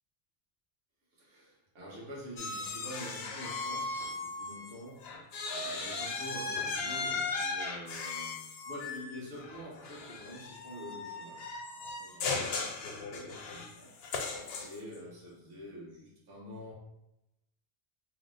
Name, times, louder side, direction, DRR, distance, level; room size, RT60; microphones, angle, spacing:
voice 1, 1.1-5.3 5.5-11.5 12.0-12.6 12.9-13.9 14.6-16.7, equal, 70° right, -5 dB, 1.2 m, -47 dB
sound 1, 2.4-4.7 5.0-15.0, left 4 dB, 75° left, 0.8 m, -37 dB
2.8 x 2.0 x 3.8 m, 0.86 s
omnidirectional pair, 1.1 m